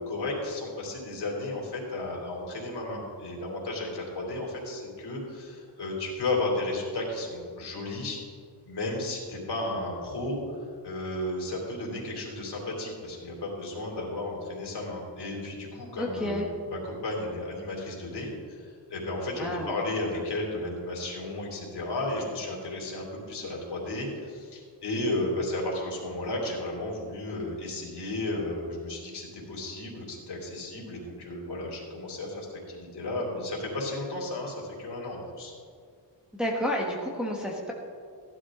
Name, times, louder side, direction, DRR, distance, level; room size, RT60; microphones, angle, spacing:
voice 1, 0.0-8.2 8.6-35.5, left 2 dB, 65° left, -2 dB, 3.4 m, -33 dB
voice 2, 16.0-16.5 19.4-19.7 36.3-37.7, left 1 dB, ahead, -3 dB, 1.3 m, -30 dB
15.5 x 11.5 x 3.8 m, 2.2 s
wide cardioid pair, 170°, 43 cm